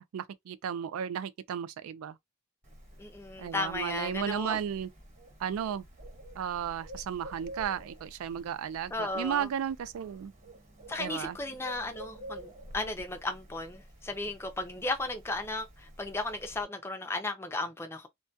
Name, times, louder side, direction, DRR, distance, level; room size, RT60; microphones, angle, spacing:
voice 1, 0.0-2.2 3.4-4.9 5.4-5.9 6.4-10.3 11.0-11.4, right 8 dB, 85° right, 0.3 m, -34 dB
Bird, 2.6-16.6, equal, 35° right, 1.0 m, -50 dB
voice 2, 3.0-4.6 8.9-9.5 10.9-18.1, left 2 dB, 10° left, 0.4 m, -35 dB
2.2 x 2.2 x 2.6 m
head